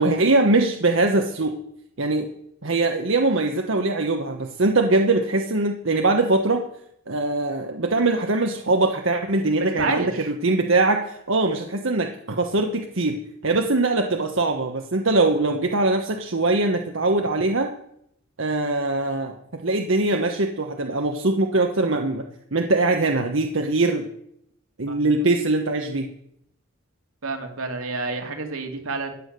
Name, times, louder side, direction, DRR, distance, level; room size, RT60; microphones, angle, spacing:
voice 1, 0.0-1.5 2.0-2.3 2.6-6.7 7.1-13.2 13.4-17.7 18.4-22.3 22.5-24.1 24.8-26.1, right 2 dB, 65° right, 4 dB, 1.1 m, -22 dB
voice 2, 9.6-10.3 24.9-25.0 27.2-29.1, right 3 dB, 85° right, 4 dB, 2.5 m, -29 dB
15.0 x 9.4 x 6.7 m, 0.74 s
head